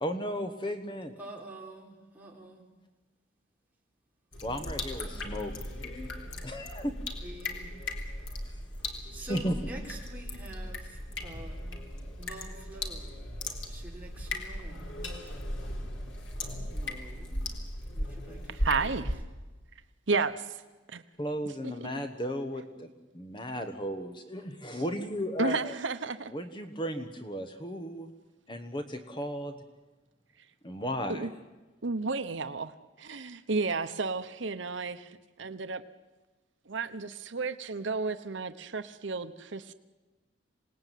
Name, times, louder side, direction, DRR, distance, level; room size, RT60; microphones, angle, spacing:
voice 1, 0.0-1.1 4.4-5.5 5.8-6.1 6.4-7.0 9.3-9.5 21.2-25.7 26.3-28.1 28.5-29.6 30.6-31.3, equal, 25° left, 7 dB, 1.3 m, -35 dB
voice 2, 1.2-2.6 7.2-7.7 9.1-11.8 12.2-13.1 13.7-15.0 16.7-17.5 17.9-19.1, right 1 dB, 10° right, -2 dB, 4.2 m, -47 dB
sound 1, 4.3-19.2, left 1 dB, 85° left, 3.7 m, -37 dB
voice 3, 18.5-19.2 20.1-20.6 20.9-21.0 21.6-21.7 24.7-24.8 25.4-26.3 31.1-31.3 31.8-35.1 35.4-35.8 36.7-39.7, right 4 dB, 75° right, 9 dB, 1.0 m, -32 dB
27.0 x 19.0 x 9.3 m, 1.2 s
head